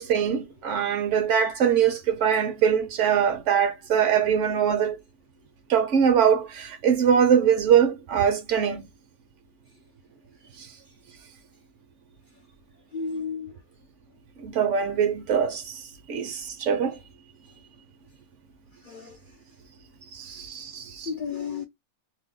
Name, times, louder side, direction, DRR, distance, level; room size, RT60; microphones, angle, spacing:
voice 1, 0.0-5.0 5.7-8.8 10.6-10.7 14.4-15.8 16.1-17.0 20.1-21.1, right 8 dB, 65° right, 0.8 m, -22 dB
voice 2, 12.9-13.5 18.9-19.2 21.1-21.6, left 5 dB, 85° left, 0.4 m, -32 dB
2.7 x 2.2 x 3.5 m
omnidirectional pair, 1.5 m